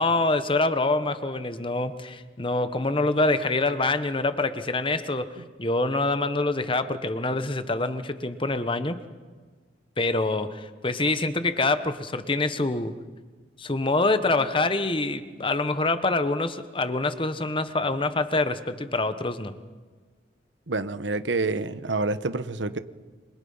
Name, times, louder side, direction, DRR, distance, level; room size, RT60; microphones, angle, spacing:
voice 1, 0.0-9.0 10.0-13.0 13.6-19.5, left 2 dB, 30° left, 11 dB, 1.2 m, -25 dB
voice 2, 20.7-22.8, right 3 dB, 90° right, 12 dB, 1.2 m, -27 dB
28.0 x 26.0 x 5.7 m, 1.4 s
head